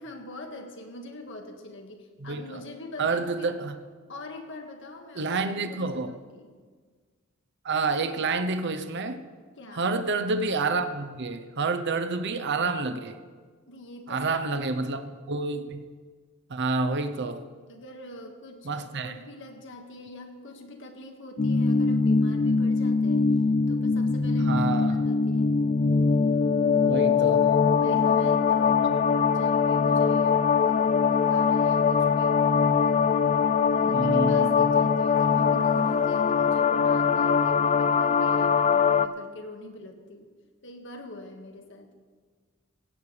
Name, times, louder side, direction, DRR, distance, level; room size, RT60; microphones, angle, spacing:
voice 1, 0.0-3.6 4.1-5.4 5.7-6.5 9.6-9.9 13.7-14.9 17.7-23.3 23.7-25.6 27.6-28.9 29.3-32.4 32.8-40.3 40.6-41.9, left 1 dB, 65° left, 3 dB, 1.9 m, -44 dB
voice 2, 2.2-2.6 3.0-3.8 5.2-6.1 7.6-9.2 9.7-13.2 14.1-15.9 16.5-17.4 18.6-19.1 24.4-25.0 26.8-27.5 28.8-29.0 33.9-34.7, right 3 dB, 55° right, 9 dB, 0.8 m, -29 dB
sound 1, 21.4-39.1, left 5 dB, 35° left, 0.4 m, -22 dB
16.5 x 16.0 x 3.4 m, 1.5 s
head